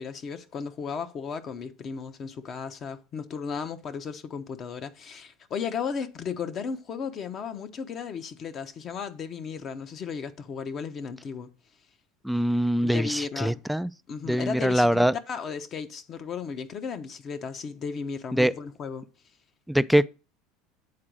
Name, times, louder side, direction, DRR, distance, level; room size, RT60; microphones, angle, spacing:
voice 1, 0.0-11.5 12.8-13.6 14.1-19.1, left 6 dB, 35° left, 0.9 m, -35 dB
voice 2, 12.2-13.9 14.3-15.1 18.3-18.5 19.7-20.1, equal, ahead, 0.3 m, -23 dB
8.7 x 3.9 x 6.2 m
supercardioid pair, 125°, 0 cm